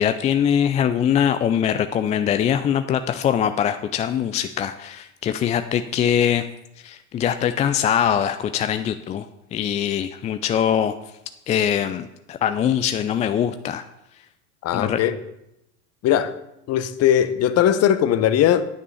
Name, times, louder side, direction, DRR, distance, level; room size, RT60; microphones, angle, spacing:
voice 1, 0.0-6.4 6.8-9.3 9.5-10.9 11.5-13.8 14.7-15.0, left 9 dB, 20° left, 10 dB, 0.3 m, -22 dB
voice 2, 14.6-15.2 16.0-16.3 16.7-18.6, left 10 dB, 35° left, 12 dB, 1.0 m, -19 dB
9.9 x 6.0 x 6.9 m, 0.84 s
hypercardioid pair, 85°, 42 cm